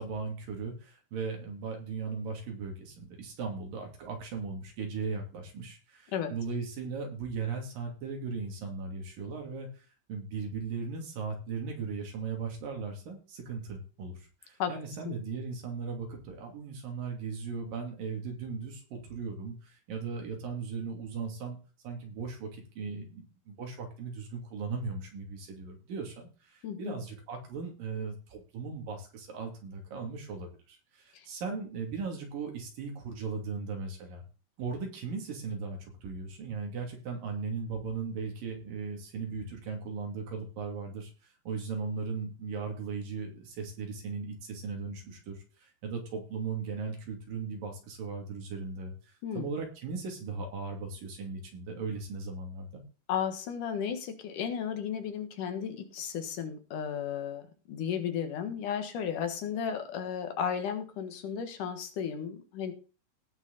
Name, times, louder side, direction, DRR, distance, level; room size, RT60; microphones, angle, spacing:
voice 1, 0.0-21.6 21.8-34.2 34.6-41.1 41.5-52.8, right 5 dB, 80° right, 2 dB, 4.5 m, -38 dB
voice 2, 26.6-27.0 31.1-31.3 49.2-49.5 53.1-62.7, left 8 dB, 70° left, 7 dB, 3.0 m, -34 dB
18.0 x 6.1 x 4.2 m, 0.34 s
omnidirectional pair, 3.9 m